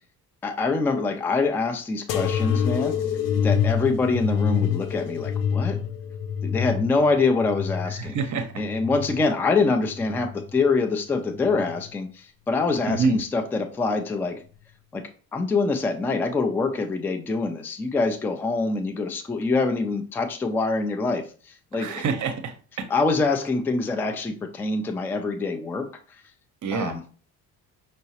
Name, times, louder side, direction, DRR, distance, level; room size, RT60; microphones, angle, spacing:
voice 1, 0.4-3.0 3.4-5.8 6.4-8.2 8.6-14.4 14.9-15.0 15.3-22.0 22.9-25.9 26.7-27.0, left 3 dB, 5° left, 4 dB, 0.3 m, -25 dB
sound 1, 2.1-9.3 9.8-10.6 11.4-11.9 12.9-13.0, left 8 dB, 80° left, 0.5 m, -27 dB
voice 2, 8.0-8.6 12.9-13.2 21.7-22.9 26.6-27.0, right 4 dB, 40° right, 8 dB, 0.8 m, -27 dB
5.2 x 2.1 x 2.9 m, 0.39 s
hypercardioid pair, 55°, 48 cm